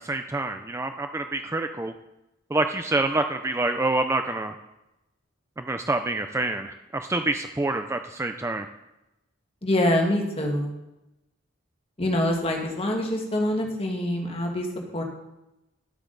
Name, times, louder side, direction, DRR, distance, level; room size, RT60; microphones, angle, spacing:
voice 1, 0.0-1.9 2.5-4.5 5.6-8.7, right 2 dB, 15° right, 7 dB, 0.4 m, -27 dB
voice 2, 9.6-10.7 12.0-15.0, left 1 dB, 30° left, 1 dB, 1.6 m, -25 dB
12.0 x 8.3 x 3.9 m, 0.95 s
head